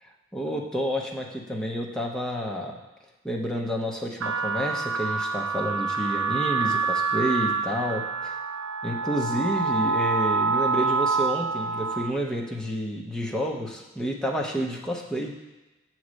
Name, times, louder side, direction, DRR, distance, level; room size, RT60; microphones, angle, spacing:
voice 1, 0.3-2.8 3.2-8.4 8.8-15.3, equal, 5° left, -1 dB, 0.7 m, -29 dB
sound 1, 4.2-12.1, right 4 dB, 85° right, 0.5 m, -26 dB
8.3 x 3.2 x 6.2 m, 1.1 s
head